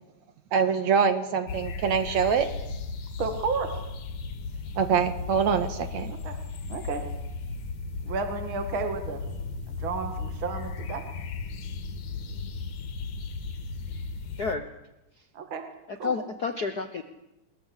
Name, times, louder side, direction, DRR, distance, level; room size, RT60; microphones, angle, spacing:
voice 1, 0.5-2.5 4.8-6.1, right 6 dB, 70° right, 9 dB, 2.6 m, -24 dB
sound 1, 1.5-14.6, left 4 dB, 80° left, 3.1 m, -36 dB
voice 2, 3.2-3.7 6.2-6.4 6.7-7.0 8.0-9.2 9.7-11.0 15.3-15.7 16.0-16.1, right 4 dB, 45° right, 6 dB, 2.7 m, -32 dB
voice 3, 14.4-14.7 15.2-15.3 15.9-17.0, left 4 dB, 65° left, 7 dB, 0.9 m, -30 dB
22.0 x 21.0 x 8.2 m, 0.93 s
omnidirectional pair, 3.5 m